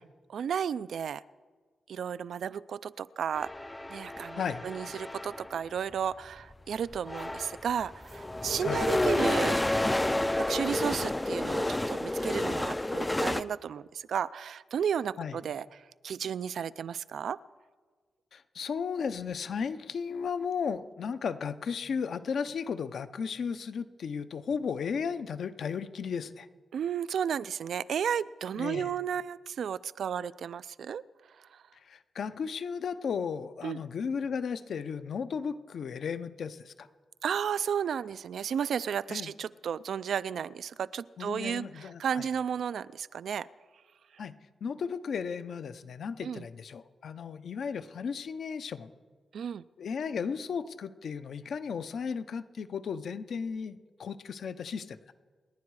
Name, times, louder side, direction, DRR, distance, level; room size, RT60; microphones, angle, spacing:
voice 1, 0.3-1.2 1.9-3.5 3.9-9.6 10.4-15.7 16.0-17.4 26.7-31.0 33.6-33.8 37.2-43.5 46.2-46.4 49.3-49.6, right 8 dB, 70° right, 16 dB, 0.4 m, -33 dB
sound 1, 3.3-5.6 6.5-6.6 6.9-13.4, left 1 dB, 10° left, 0.4 m, -30 dB
voice 2, 4.4-4.7 8.6-8.9 15.2-15.4 18.3-26.5 28.5-28.9 31.9-36.9 39.1-39.3 41.2-42.3 44.2-44.3 44.6-48.9 49.8-55.0, left 6 dB, 60° left, 11 dB, 0.7 m, -35 dB
28.5 x 10.5 x 4.8 m, 1.5 s
wide cardioid pair, 165°, 0 cm